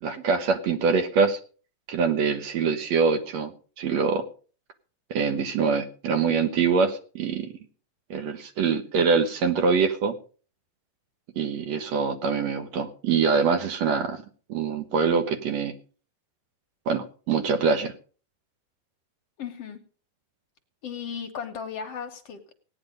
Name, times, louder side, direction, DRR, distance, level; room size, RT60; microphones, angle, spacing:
voice 1, 0.0-1.4 1.9-3.5 3.8-4.2 5.1-7.5 8.1-10.1 11.4-14.2 14.5-15.7 16.9-17.9, right 5 dB, 65° right, 8 dB, 2.3 m, -24 dB
voice 2, 19.4-19.8 20.8-22.5, left 7 dB, 60° left, 6 dB, 2.0 m, -36 dB
17.5 x 9.7 x 5.2 m, 0.39 s
omnidirectional pair, 3.6 m